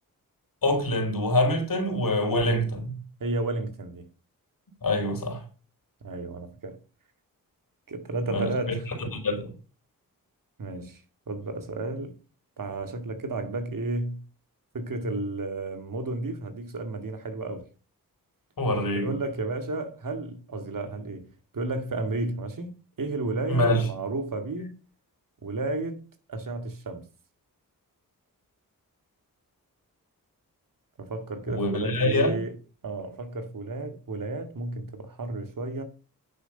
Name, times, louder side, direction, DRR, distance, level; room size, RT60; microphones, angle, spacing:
voice 1, 0.6-3.0 4.8-5.5 8.3-9.5 18.6-19.1 23.5-23.9 31.5-32.4, left 1 dB, 65° left, 4.0 m, -25 dB
voice 2, 3.2-4.1 6.0-6.8 7.9-8.9 10.6-11.0 11.3-12.2 12.6-14.2 14.7-17.7 19.0-21.3 21.5-24.8 25.4-26.0 26.3-27.1 31.0-32.6 32.8-35.8, right 2 dB, 60° right, 2.2 m, -32 dB
10.0 x 7.0 x 5.6 m
cardioid pair, 55°, 36 cm